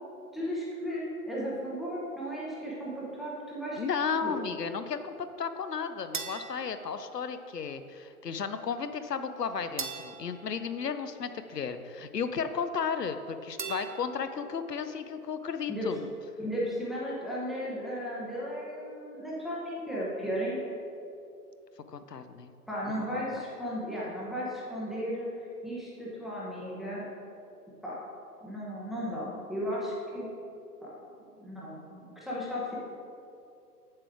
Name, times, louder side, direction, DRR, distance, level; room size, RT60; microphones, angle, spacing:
voice 1, 0.3-4.3 15.7-15.9 16.4-20.8 22.7-27.1 27.8-28.0 28.4-30.3 30.8-31.0 31.4-32.7, equal, ahead, -7 dB, 0.7 m, -35 dB
voice 2, 3.7-16.1 21.9-22.5 23.3-23.4, left 6 dB, 80° left, 10 dB, 0.7 m, -34 dB
sound 1, 6.1-7.6 9.8-11.6 13.6-14.7, right 5 dB, 35° right, 0.4 m, -42 dB
7.5 x 7.4 x 4.8 m, 2.6 s
figure-of-eight pair, 120°, 47 cm